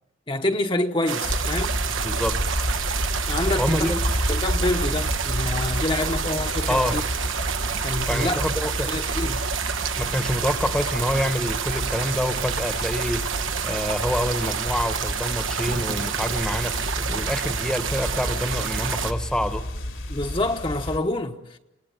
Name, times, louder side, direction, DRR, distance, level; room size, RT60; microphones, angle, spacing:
voice 1, 0.3-1.8 3.3-3.9 4.3-7.0 7.8-8.4 8.9-9.4 20.1-21.6, left 2 dB, 25° left, 1.0 m, -27 dB
sound 1, 1.1-19.1, right 7 dB, 80° right, 1.3 m, -29 dB
sound 2, 1.2-21.0, left 1 dB, 85° left, 3.8 m, -30 dB
voice 2, 2.0-2.6 3.6-4.0 6.7-6.9 8.1-8.9 10.0-13.2 13.6-19.6, equal, 5° left, 1.1 m, -27 dB
29.0 x 19.0 x 9.2 m
head